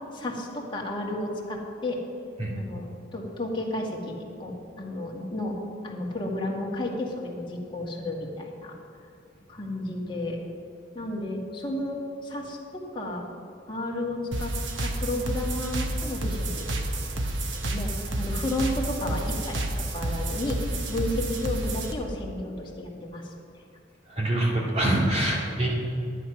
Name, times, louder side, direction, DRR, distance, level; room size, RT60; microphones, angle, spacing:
voice 1, 0.1-2.0 2.5-5.6 5.8-8.7 9.5-10.4 10.9-13.3 13.7-14.5 14.8-23.3, left 1 dB, 25° left, -2 dB, 1.9 m, -32 dB
sound 1, 14.3-21.9, right 1 dB, 75° right, 1.2 m, -30 dB
voice 2, 24.1-25.7, right 1 dB, 35° right, -3 dB, 2.2 m, -24 dB
11.5 x 9.2 x 6.0 m, 2.6 s
head